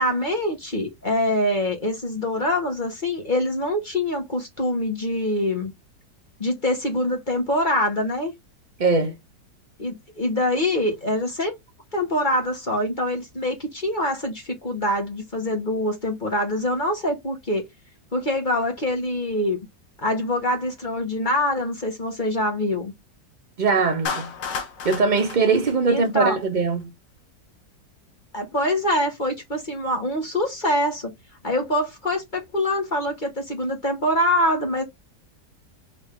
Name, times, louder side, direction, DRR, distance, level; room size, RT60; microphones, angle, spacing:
voice 1, 0.0-5.7 6.4-8.3 9.8-11.5 11.9-17.6 18.1-19.6 20.0-22.9 25.9-26.4 28.3-31.1 31.4-34.8, left 1 dB, 30° left, 1.4 m, -24 dB
voice 2, 8.8-9.2 23.6-24.3 24.8-26.9, right 4 dB, 45° right, 0.6 m, -21 dB
Clapping, 24.1-26.5, left 5 dB, 80° left, 1.6 m, -32 dB
3.9 x 3.7 x 3.3 m
omnidirectional pair, 1.9 m